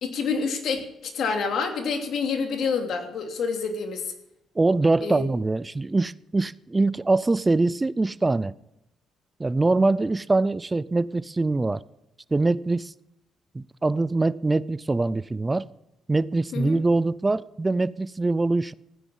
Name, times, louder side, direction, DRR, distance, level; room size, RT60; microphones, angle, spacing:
voice 1, 0.0-4.1 5.0-5.2 16.5-16.8, left 5 dB, 70° left, 4 dB, 2.9 m, -28 dB
voice 2, 4.6-8.5 9.4-11.8 12.3-12.9 13.5-15.6 16.1-18.7, right 2 dB, 20° right, 19 dB, 0.6 m, -23 dB
15.5 x 9.9 x 7.3 m, 0.87 s
cardioid pair, 90°, 0 cm